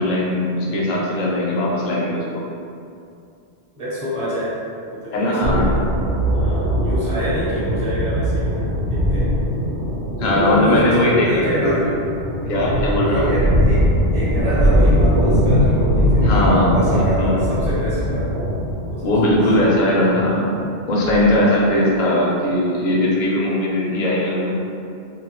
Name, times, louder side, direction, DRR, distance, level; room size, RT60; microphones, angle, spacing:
voice 1, 0.0-2.4 5.1-5.8 10.2-12.0 12.5-13.3 16.2-17.4 19.0-20.5 20.9-24.5, left 1 dB, 55° left, -4 dB, 0.6 m, -19 dB
voice 2, 3.7-5.7 6.3-9.4 10.2-11.8 12.4-12.6 13.0-13.9 14.1-18.3 18.9-19.4, equal, 30° right, -10 dB, 0.9 m, -26 dB
sound 1, 5.4-21.6, equal, 80° right, 0.9 m, -20 dB
2.7 x 2.3 x 2.9 m, 2.5 s
omnidirectional pair, 1.2 m